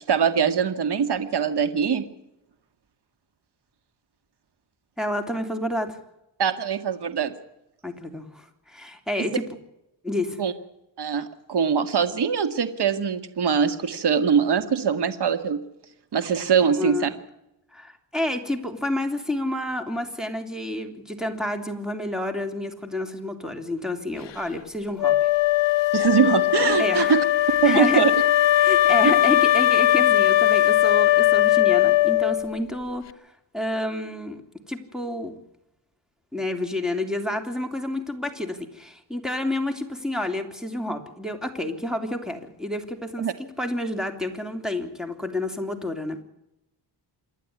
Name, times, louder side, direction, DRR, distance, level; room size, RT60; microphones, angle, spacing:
voice 1, 0.1-2.1 6.4-7.3 9.2-9.3 10.4-10.5 11.0-15.6 16.1-17.1 25.9-27.2 27.6-28.1 43.2-43.3, right 7 dB, 65° right, 9 dB, 2.0 m, -22 dB
voice 2, 5.0-6.0 7.8-9.5 10.0-10.4 16.8-17.1 17.7-25.1 26.8-27.2 27.6-28.0 28.6-33.1 33.5-34.4 34.7-35.4 36.3-43.3 43.6-46.2, left 1 dB, ahead, 6 dB, 3.3 m, -29 dB
Wind instrument woodwind instrument, 25.0-32.6, left 13 dB, 85° left, 0.9 m, -19 dB
27.5 x 11.0 x 9.7 m, 0.86 s
wide cardioid pair, 105°, 42 cm